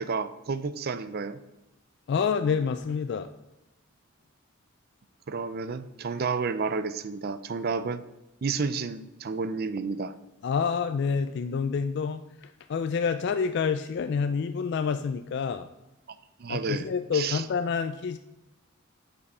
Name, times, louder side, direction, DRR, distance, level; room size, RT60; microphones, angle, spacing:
voice 1, 0.0-1.4 5.3-8.0 8.4-10.1 16.4-16.9 17.1-17.4, right 4 dB, 50° right, 13 dB, 0.4 m, -31 dB
voice 2, 2.1-3.3 10.4-15.7 16.5-18.2, left 6 dB, 55° left, 9 dB, 0.3 m, -28 dB
6.9 x 5.3 x 5.5 m, 0.98 s
head